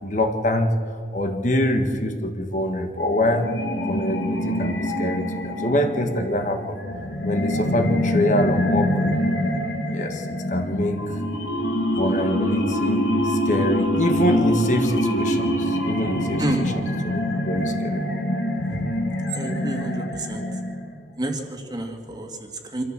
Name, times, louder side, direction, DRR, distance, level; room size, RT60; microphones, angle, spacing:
voice 1, 0.0-0.7 1.1-3.5 3.9-6.8 7.2-9.2 9.9-11.0 11.9-18.0, left 1 dB, 45° left, 5 dB, 1.6 m, -25 dB
sound 1, 3.1-21.0, equal, 85° left, 3.1 m, -25 dB
voice 2, 19.3-20.5 21.2-22.8, right 1 dB, 25° right, 3 dB, 2.2 m, -29 dB
26.0 x 13.5 x 7.6 m, 2.2 s
head